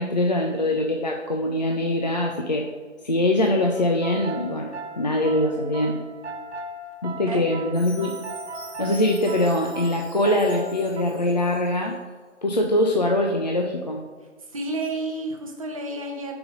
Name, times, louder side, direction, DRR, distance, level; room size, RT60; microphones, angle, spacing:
voice 1, 0.0-2.7 3.0-6.0 7.0-8.1 8.8-11.9 12.4-14.0, left 1 dB, 35° left, 0 dB, 0.4 m, -23 dB
sound 1, 3.7-11.0, right 2 dB, 60° right, 0.7 m, -37 dB
Chime, 7.7-11.8, equal, 5° left, 0.9 m, -46 dB
voice 2, 7.8-8.2 14.5-16.4, right 2 dB, 30° right, 2 dB, 0.8 m, -31 dB
5.2 x 4.9 x 5.1 m, 1.5 s
figure-of-eight pair, 155°, 38 cm